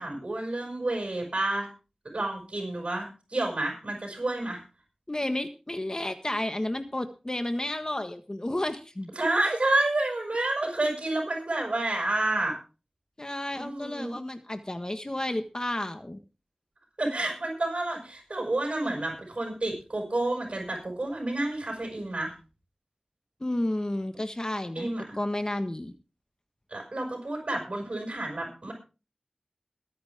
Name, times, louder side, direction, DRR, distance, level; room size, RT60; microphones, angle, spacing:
voice 1, 0.0-1.7 2.1-4.6 9.2-12.6 13.5-14.2 17.0-22.3 24.7-25.2 26.7-28.7, right 2 dB, 70° right, 0 dB, 6.1 m, -29 dB
voice 2, 5.1-9.1 13.2-16.2 23.4-25.9, left 1 dB, 35° left, 8 dB, 1.5 m, -32 dB
22.0 x 9.4 x 3.6 m, 0.33 s
wide cardioid pair, 50°, 2 cm